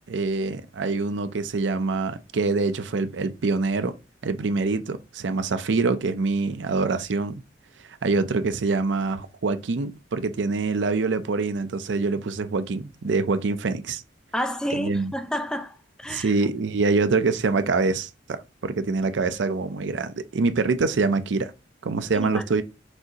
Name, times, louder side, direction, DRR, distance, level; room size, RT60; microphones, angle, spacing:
voice 1, 0.1-3.9 4.2-7.4 8.0-14.0 14.7-15.1 16.1-21.5 21.8-22.6, right 3 dB, 65° right, 0.5 m, -25 dB
voice 2, 14.3-16.3 22.1-22.4, equal, 5° left, 0.4 m, -30 dB
6.2 x 2.6 x 2.8 m
head